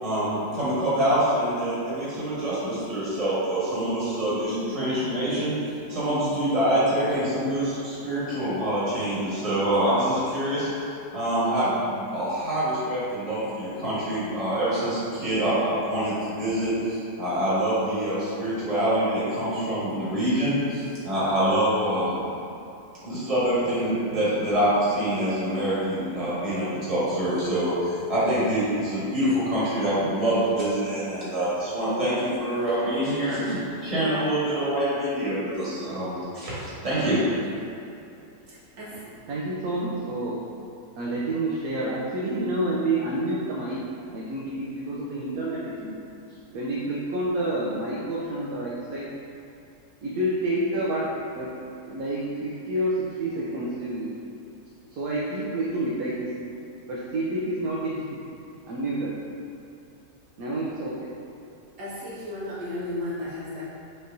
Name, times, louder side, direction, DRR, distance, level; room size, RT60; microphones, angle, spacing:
voice 1, 0.0-5.5 5.9-22.2 23.0-37.2, right 1 dB, 25° right, -10 dB, 1.4 m, -25 dB
voice 2, 38.5-39.0 61.8-63.6, left 1 dB, 85° right, -9 dB, 1.7 m, -34 dB
voice 3, 39.0-40.4 40.9-43.8 44.1-46.0 46.3-49.1 50.0-51.1 51.3-51.6 51.9-54.1 54.9-56.3 56.9-58.2 58.7-59.1 60.4-61.1, right 1 dB, 70° right, -6 dB, 1.0 m, -29 dB
6.3 x 3.1 x 2.6 m, 2.7 s
omnidirectional pair, 1.7 m